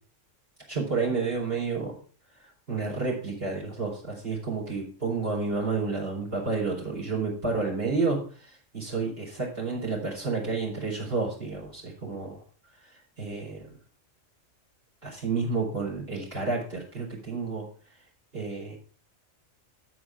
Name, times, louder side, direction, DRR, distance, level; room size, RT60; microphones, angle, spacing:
voice 1, 0.7-1.9 2.7-12.4 12.8-13.7 15.0-17.6 18.3-18.8, right 4 dB, 50° right, -3 dB, 4.5 m, -30 dB
12.0 x 5.1 x 5.9 m, 0.41 s
omnidirectional pair, 1.3 m